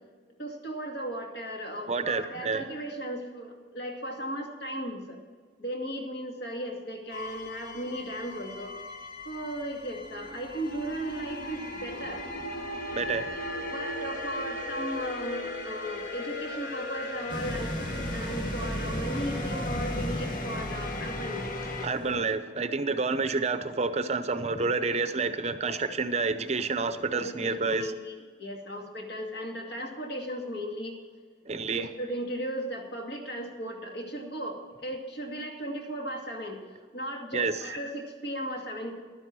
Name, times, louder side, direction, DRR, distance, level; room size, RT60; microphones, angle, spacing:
voice 1, 0.4-5.2 5.6-8.8 9.2-12.2 13.4-17.7 18.1-21.5 25.6-25.8 27.1-31.0 31.7-36.6 36.9-39.0, equal, 60° left, 1 dB, 2.3 m, -36 dB
voice 2, 1.9-2.7 12.9-13.3 21.8-27.9 31.5-31.9 37.3-37.6, right 4 dB, 35° right, 11 dB, 0.7 m, -29 dB
sound 1, 7.1-21.9, left 1 dB, 45° left, 1.2 m, -37 dB
sound 2, 17.3-22.3, equal, 25° left, 1.2 m, -35 dB
12.0 x 9.9 x 6.2 m, 1.5 s
head